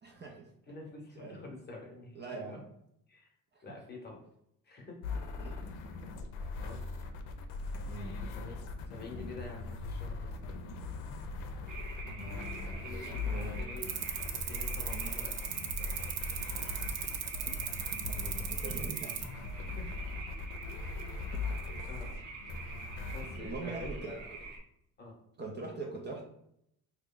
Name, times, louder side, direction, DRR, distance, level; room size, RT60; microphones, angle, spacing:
voice 1, 0.0-0.5 1.2-1.4 2.1-2.6 3.5-3.6 5.4-5.6 7.9-8.2 12.0-13.6 14.9-15.2 18.1-19.4 21.3-21.4 23.4-24.2 25.4-26.2, right 3 dB, 30° right, 0 dB, 0.5 m, -43 dB
voice 2, 0.7-2.6 3.1-3.3 3.6-4.2 4.6-5.6 6.6-6.8 8.2-8.6 8.9-10.5 12.6-13.9 14.4-16.1 16.5-16.7 17.3-17.5 19.8-19.9 21.8-22.1 23.1-24.3 25.0-25.2, left 2 dB, 25° left, 0 dB, 0.8 m, -48 dB
sound 1, 5.0-23.4, left 3 dB, 90° left, 0.6 m, -40 dB
sound 2, 11.7-24.6, right 4 dB, 50° right, 0.9 m, -46 dB
sound 3, 13.8-19.2, right 10 dB, 80° right, 0.5 m, -37 dB
3.0 x 2.3 x 3.7 m, 0.75 s
cardioid pair, 120°, 38 cm